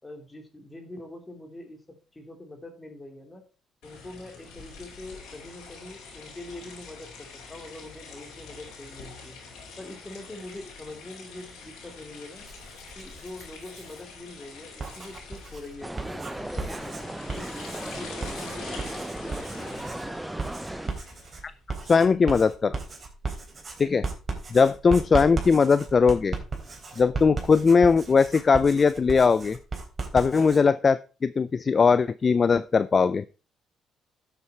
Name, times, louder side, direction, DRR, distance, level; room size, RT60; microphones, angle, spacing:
voice 1, 0.0-1.8 2.1-3.4 3.8-9.4 9.8-12.4 13.0-17.5 17.8-20.2, left 1 dB, 20° left, 4 dB, 3.5 m, -44 dB
sound 1, 3.8-21.5, left 4 dB, 85° left, 4.3 m, -45 dB
Writing, 12.4-14.0 14.6-30.6, right 3 dB, 35° right, 3.6 m, -36 dB
sound 2, 15.8-20.9, right 1 dB, 10° right, 0.6 m, -36 dB
voice 2, 21.8-22.8 23.8-24.1 24.5-26.3 27.0-29.6 30.1-33.3, left 5 dB, 40° left, 15 dB, 0.5 m, -20 dB
11.0 x 8.0 x 4.5 m, 0.35 s
cardioid pair, 80°, 0 cm